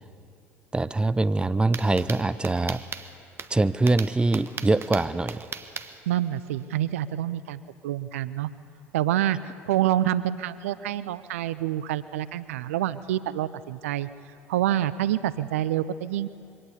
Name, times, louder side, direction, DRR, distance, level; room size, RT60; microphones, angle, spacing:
voice 1, 0.7-2.8 3.5-5.4, right 2 dB, 10° right, 15 dB, 0.7 m, -23 dB
sound 1, 1.7-6.8, right 5 dB, 30° right, 1.2 m, -38 dB
voice 2, 6.1-8.5 8.9-14.1 14.5-16.3, right 12 dB, 75° right, 16 dB, 0.5 m, -27 dB
23.5 x 17.5 x 8.4 m, 2.5 s
hypercardioid pair, 65°, 7 cm